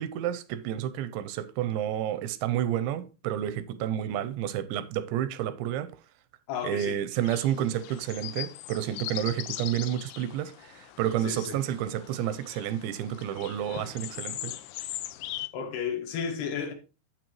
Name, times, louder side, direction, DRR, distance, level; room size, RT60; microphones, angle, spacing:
voice 1, 0.0-5.9 6.6-14.5, right 11 dB, 85° right, 2.8 m, -30 dB
voice 2, 6.5-7.0 11.2-11.6 15.5-16.7, left 7 dB, 70° left, 2.9 m, -33 dB
sound 1, 7.2-15.5, left 14 dB, 85° left, 2.3 m, -40 dB
9.0 x 8.1 x 3.0 m
omnidirectional pair, 5.2 m